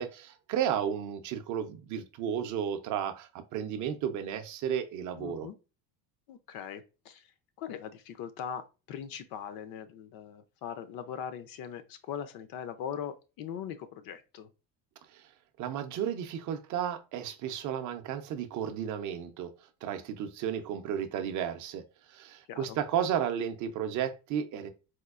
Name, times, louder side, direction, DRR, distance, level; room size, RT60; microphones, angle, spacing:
voice 1, 0.0-5.5 15.1-15.2 15.6-19.5 19.8-21.8 22.1-24.7, right 9 dB, 45° right, 0.5 m, -33 dB
voice 2, 5.2-5.6 6.3-7.3 7.6-14.5 22.5-22.8, left 8 dB, 55° left, 0.5 m, -40 dB
4.3 x 2.3 x 2.3 m
cardioid pair, 150°, 43 cm